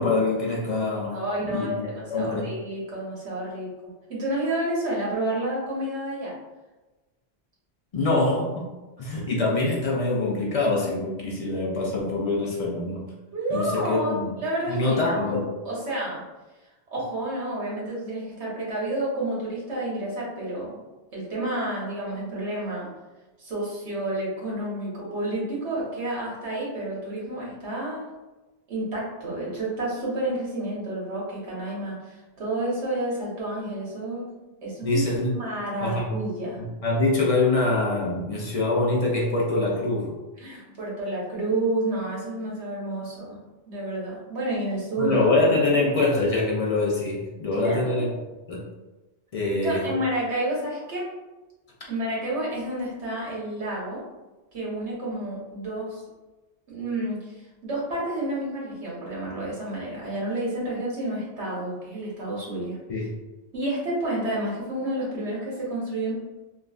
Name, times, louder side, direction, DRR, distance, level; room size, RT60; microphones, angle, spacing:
voice 1, 0.0-1.2 1.4-2.6 7.9-8.7 9.0-13.0 13.5-14.3 14.7-15.5 34.8-35.4 35.8-36.2 36.6-40.2 45.0-48.1 48.5-48.6 49.3-49.9 62.9-63.1, left 2 dB, 55° left, -3 dB, 0.4 m, -24 dB
voice 2, 1.1-6.3 13.3-15.4 15.6-16.2 16.9-20.8 21.1-22.9 23.4-28.1 28.7-34.3 34.6-35.1 35.3-36.6 40.4-43.4 43.7-45.2 47.5-48.1 49.6-51.1 51.9-54.0 54.5-56.0 56.7-57.3 57.6-63.1 63.5-66.1, right 1 dB, 75° right, -5 dB, 1.3 m, -30 dB
3.0 x 2.3 x 2.3 m, 1.1 s
omnidirectional pair, 1.2 m